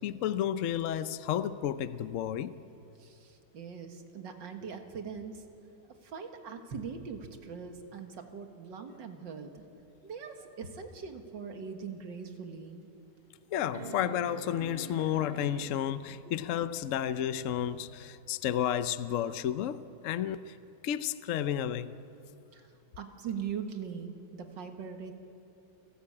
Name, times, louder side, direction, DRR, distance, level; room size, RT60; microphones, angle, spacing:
voice 1, 0.0-2.5 13.5-20.5 20.8-21.9, left 10 dB, 70° left, 0.7 m, -32 dB
voice 2, 3.0-5.4 5.8-9.6 10.0-12.9 22.5-22.7 23.0-25.1, right 6 dB, 70° right, 2.2 m, -41 dB
sound 1, 11.6-11.7 12.3-12.4 13.7-16.2 17.9-18.0, right 3 dB, 35° right, 1.2 m, -44 dB
29.5 x 12.5 x 8.7 m
omnidirectional pair, 2.1 m